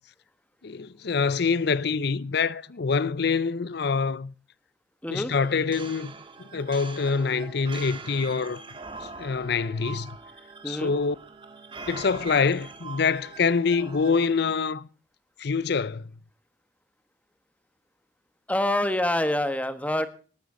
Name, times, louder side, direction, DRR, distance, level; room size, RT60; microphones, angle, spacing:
voice 1, 0.6-4.3 5.1-6.1 6.4-8.6 9.2-10.2 10.7-11.2 11.9-14.9 15.4-16.1, left 5 dB, 60° left, 0.6 m, -25 dB
voice 2, 5.0-5.3 10.6-10.9 18.5-20.1, left 1 dB, 10° left, 1.2 m, -26 dB
sound 1, 5.3-14.6, right 4 dB, 30° right, 1.8 m, -43 dB
18.0 x 12.0 x 3.8 m
head